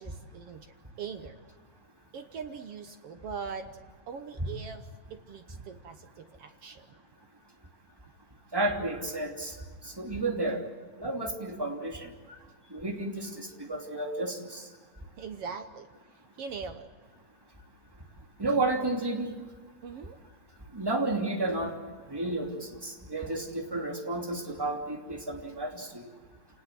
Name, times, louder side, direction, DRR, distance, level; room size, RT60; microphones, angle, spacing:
voice 1, 0.0-1.4 2.1-3.7 4.1-6.9 15.2-16.9 19.8-20.2, right 6 dB, 65° right, 7 dB, 1.5 m, -41 dB
voice 2, 8.5-9.5 10.0-10.6 11.0-12.1 12.7-14.6 18.4-19.3 20.7-21.7 22.1-25.9, right 2 dB, 5° right, 1 dB, 2.4 m, -31 dB
28.5 x 19.0 x 7.7 m, 1.5 s
omnidirectional pair, 3.9 m